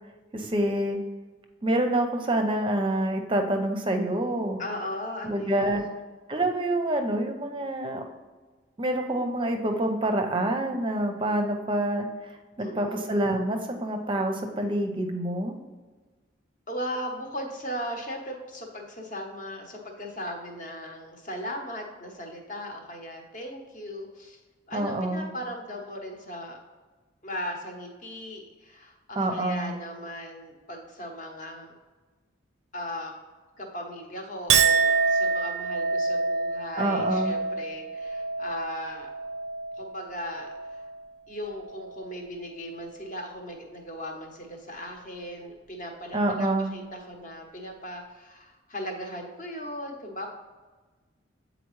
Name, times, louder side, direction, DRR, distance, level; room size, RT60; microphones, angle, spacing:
voice 1, 0.3-1.0 1.6-4.6 5.2-5.8 6.3-8.0 8.8-12.3 12.6-15.6 24.7-25.3 29.2-29.7 36.8-37.4 46.1-46.7, right 1 dB, 25° right, 5 dB, 0.6 m, -27 dB
voice 2, 4.6-6.0 12.6-13.1 16.7-24.4 24.7-26.6 27.2-31.7 32.7-33.1 33.6-39.1 39.8-40.8 41.3-50.3, equal, 40° left, 2 dB, 0.9 m, -37 dB
Chink clink, 34.5-41.1 41.4-42.0, right 5 dB, 75° right, 0.4 m, -27 dB
8.4 x 4.0 x 3.1 m, 1.3 s
head